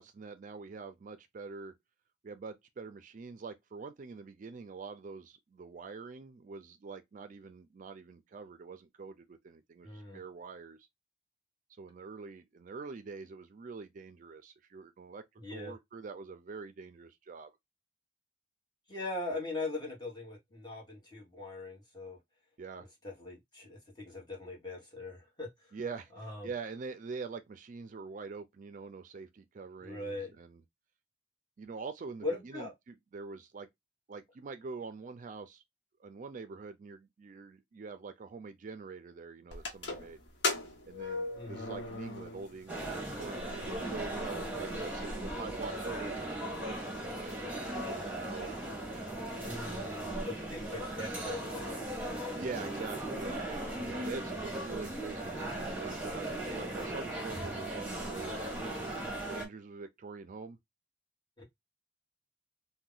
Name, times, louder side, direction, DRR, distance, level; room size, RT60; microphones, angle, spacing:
voice 1, 0.0-1.7 2.2-10.8 11.8-15.2 15.5-17.5 22.6-22.9 25.7-30.6 31.6-33.7 34.1-35.6 36.0-40.2 40.9-46.1 46.4-49.9 52.3-58.7 59.3-60.6, right 4 dB, 45° right, 0.4 m, -45 dB
voice 2, 9.8-10.2 15.4-15.7 18.9-22.2 23.0-25.5 26.2-26.5 29.8-30.3 32.2-32.7 41.3-41.7 49.4-51.8 61.4-61.5, left 2 dB, 25° left, 1.4 m, -40 dB
sound 1, 39.5-42.7 43.0-43.1 43.9-44.0 44.4-44.5 44.7-45.3, left 3 dB, 75° left, 1.0 m, -37 dB
sound 2, 42.7-59.4, right 1 dB, 10° right, 1.1 m, -38 dB
2.8 x 2.2 x 3.8 m
head